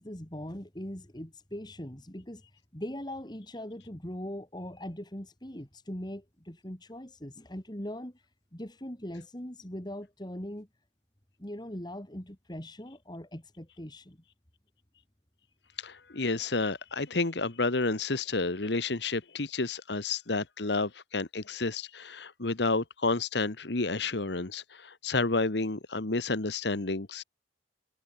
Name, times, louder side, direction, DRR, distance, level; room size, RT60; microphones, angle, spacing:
voice 1, 0.0-2.4 2.7-8.3 8.5-10.7 11.4-14.2, left 1 dB, 25° left, 2.8 m, -40 dB
voice 2, 15.8-27.2, left 3 dB, 75° left, 1.5 m, -30 dB
head